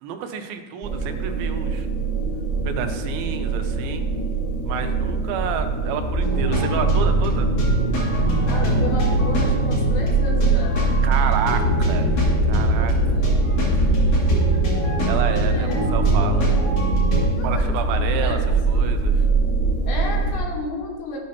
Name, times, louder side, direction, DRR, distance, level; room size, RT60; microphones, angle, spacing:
voice 1, 0.0-1.9 2.6-4.1 4.7-7.5 11.0-12.1 12.5-12.9 15.0-16.5 17.4-18.4 18.7-19.3, right 7 dB, 85° right, 7 dB, 2.6 m, -29 dB
sound 1, 0.8-20.4, right 4 dB, 40° right, 0.8 m, -22 dB
sound 2, 6.2-17.3, left 1 dB, 50° left, 3.4 m, -25 dB
sound 3, 8.2-15.4, equal, 65° right, 1.9 m, -28 dB
voice 2, 8.4-10.7 12.6-14.6 15.4-16.0 17.4-17.7 17.9-18.9 19.9-21.2, left 2 dB, 85° left, -1 dB, 3.4 m, -34 dB
14.5 x 6.4 x 2.8 m, 1.4 s
omnidirectional pair, 4.2 m